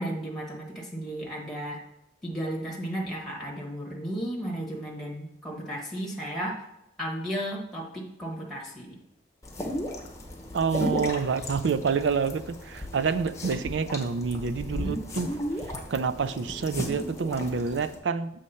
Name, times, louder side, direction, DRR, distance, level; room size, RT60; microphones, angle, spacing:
voice 1, 0.0-1.8 2.2-6.6 7.0-9.0 14.7-15.1, right 1 dB, ahead, -2 dB, 1.2 m, -34 dB
sound 1, 9.4-18.0, left 1 dB, 15° left, 0.8 m, -35 dB
voice 2, 10.5-15.3 15.9-18.3, right 5 dB, 90° right, 13 dB, 0.4 m, -28 dB
7.3 x 3.2 x 5.5 m, 0.82 s
head